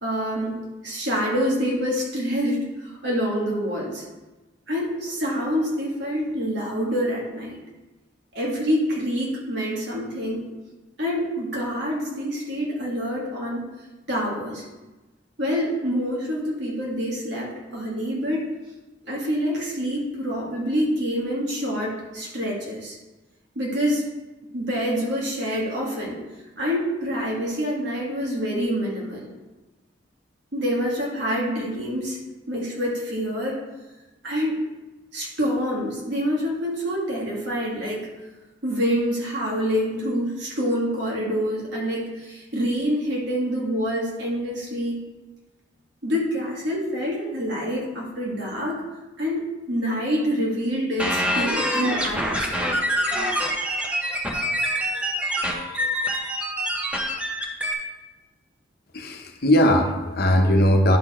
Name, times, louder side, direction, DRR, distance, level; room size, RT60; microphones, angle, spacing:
voice 1, 0.0-4.0 4.7-7.6 8.3-10.4 11.0-13.6 14.1-14.6 15.4-18.5 19.1-23.0 23.6-24.0 24.5-26.2 26.6-29.3 30.5-32.2 32.5-33.6 34.2-34.6 35.1-38.1 38.6-45.0 46.0-48.8 49.2-52.8, equal, 65° right, -3 dB, 2.2 m, -26 dB
sound 1, 51.0-57.7, equal, 5° right, 0.9 m, -25 dB
voice 2, 58.9-61.0, equal, 55° left, 3 dB, 0.9 m, -19 dB
10.5 x 4.4 x 4.4 m, 1.1 s
head